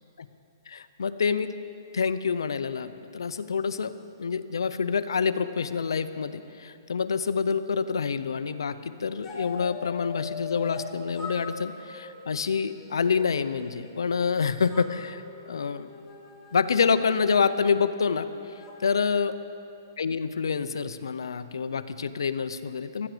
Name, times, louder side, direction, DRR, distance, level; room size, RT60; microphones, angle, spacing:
voice 1, 0.7-1.5 1.9-3.9 4.2-15.9 16.5-18.3 18.8-19.4 20.0-23.1, left 5 dB, 85° left, 13 dB, 0.7 m, -27 dB
sound 1, 9.2-10.9 11.2-14.3 14.7-18.7, left 5 dB, 20° left, 1.9 m, -42 dB
15.5 x 13.0 x 5.0 m, 2.6 s
hypercardioid pair, 150°, 2 cm